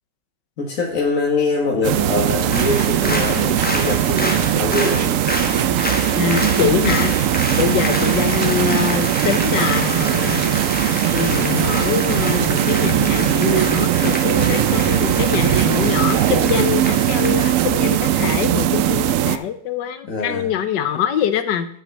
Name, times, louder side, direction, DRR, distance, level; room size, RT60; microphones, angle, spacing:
voice 1, 0.6-5.2 14.5-14.9 20.1-20.5, left 2 dB, 50° left, -1 dB, 1.7 m, -23 dB
sound 1, 1.8-19.4, right 11 dB, 75° right, 0.7 m, -19 dB
Applause, 2.4-19.0 19.3-19.4, left 1 dB, 5° left, 1.1 m, -29 dB
voice 2, 6.1-7.2 7.5-10.6 11.1-21.7, left 9 dB, 80° left, 11 dB, 1.5 m, -24 dB
9.2 x 6.8 x 5.3 m, 0.62 s
omnidirectional pair, 1.9 m